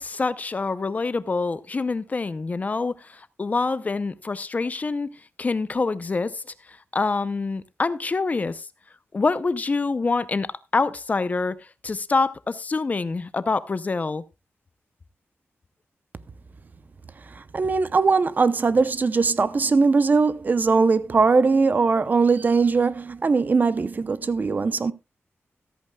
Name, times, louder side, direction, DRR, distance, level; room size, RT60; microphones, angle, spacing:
voice 1, 0.0-5.1 5.4-6.4 6.7-8.7 9.1-14.2, left 3 dB, 35° left, 0.6 m, -26 dB
voice 2, 17.4-24.9, right 4 dB, 40° right, 0.6 m, -20 dB
14.0 x 14.0 x 2.3 m
wide cardioid pair, 140°, 5 cm